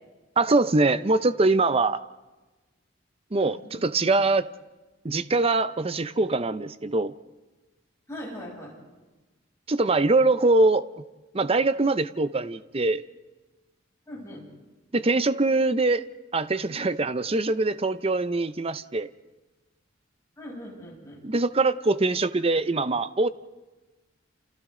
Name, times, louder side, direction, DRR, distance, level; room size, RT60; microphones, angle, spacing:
voice 1, 0.4-2.0 3.3-4.5 5.0-7.1 9.7-10.9 11.3-13.0 14.9-16.1 16.3-19.1 21.2-23.3, right 3 dB, 30° right, 14 dB, 0.6 m, -23 dB
voice 2, 3.4-4.3 8.1-8.7 14.1-14.4 20.4-21.2, equal, 15° left, -4 dB, 7.3 m, -41 dB
29.5 x 28.5 x 3.8 m, 1.2 s
head